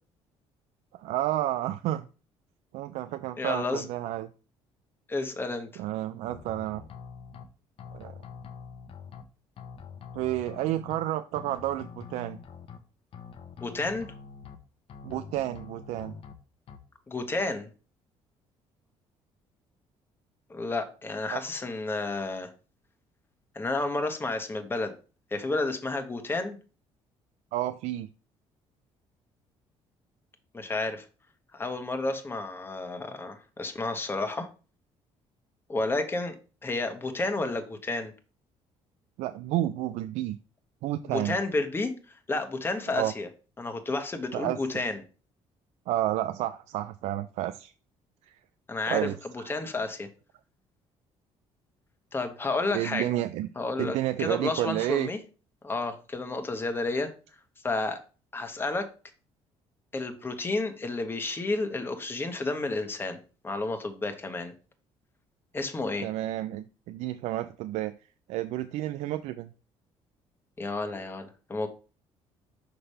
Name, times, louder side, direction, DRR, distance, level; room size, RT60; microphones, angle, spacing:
voice 1, 1.0-2.1 2.7-4.3 5.8-6.8 7.9-8.1 10.1-12.4 15.0-16.2 21.3-21.4 27.5-28.1 39.2-40.4 40.8-41.4 42.9-43.1 44.3-44.6 45.9-47.7 48.3-48.4 48.9-49.2 49.4-49.5 52.7-53.5 53.8-55.1 66.0-67.9 68.3-69.5, right 14 dB, 80° right, 10 dB, 0.4 m, -30 dB
voice 2, 3.4-3.9 5.1-5.8 13.6-14.1 17.1-17.7 20.5-22.5 23.5-24.9 25.3-26.6 30.5-31.1 31.5-34.5 35.7-36.4 36.6-38.1 41.1-41.9 42.3-43.3 43.6-45.0 48.7-50.1 52.1-53.1 53.6-55.2 55.6-57.1 57.6-58.0 58.3-58.9 59.9-63.2 63.4-64.5 65.5-66.1 70.6-71.7, left 2 dB, 20° left, 6 dB, 1.1 m, -31 dB
sound 1, 6.3-7.4 7.8-9.2 9.6-11.0 11.3-12.8 13.1-14.6 14.9-16.3 16.7-16.8, left 6 dB, 55° left, 0.9 m, -45 dB
5.8 x 3.3 x 5.5 m, 0.35 s
cardioid pair, 115°, 11 cm